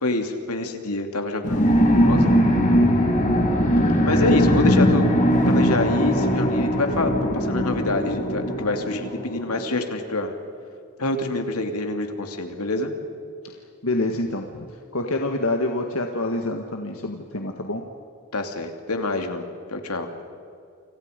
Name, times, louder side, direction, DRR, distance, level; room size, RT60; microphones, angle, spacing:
voice 1, 0.0-2.5 4.1-5.1 5.5-10.3 11.0-12.9 18.3-20.1, left 2 dB, 85° left, 5 dB, 2.8 m, -26 dB
sound 1, 1.4-9.6, equal, 35° left, 3.5 m, -20 dB
voice 2, 13.4-17.9, left 2 dB, 65° left, 3 dB, 1.7 m, -27 dB
29.5 x 27.0 x 5.3 m, 2.5 s
head